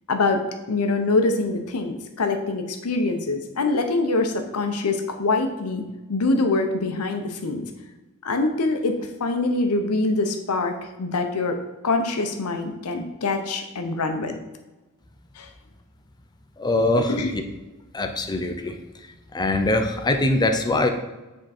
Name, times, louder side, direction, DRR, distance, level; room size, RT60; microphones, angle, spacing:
voice 1, 0.1-5.8 6.1-7.7 8.2-11.6 11.8-14.3 15.4-15.5 17.0-17.3, left 3 dB, 80° left, 6 dB, 0.8 m, -24 dB
voice 2, 16.6-17.4 17.9-18.7 19.3-20.9, left 2 dB, 20° left, 5 dB, 0.5 m, -22 dB
7.6 x 3.7 x 4.2 m, 1.1 s
head